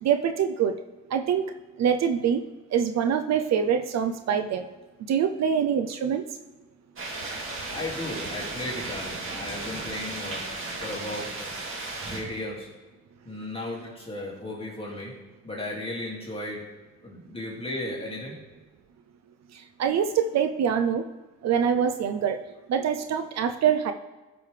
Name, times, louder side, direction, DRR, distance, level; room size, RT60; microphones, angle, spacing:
voice 1, 0.0-0.8 1.1-1.5 1.8-2.4 2.7-4.7 5.1-6.2 19.8-21.0 21.4-22.4 22.7-23.9, right 8 dB, 60° right, 8 dB, 0.5 m, -24 dB
sound 1, 7.0-12.2, right 2 dB, 45° right, 2.3 m, -35 dB
voice 2, 7.7-11.5 12.1-12.7 13.2-15.1 15.4-16.7 17.0-18.4, left 1 dB, 20° left, -4 dB, 2.2 m, -35 dB
12.5 x 5.1 x 3.3 m, 1.2 s
cardioid pair, 90°, 30 cm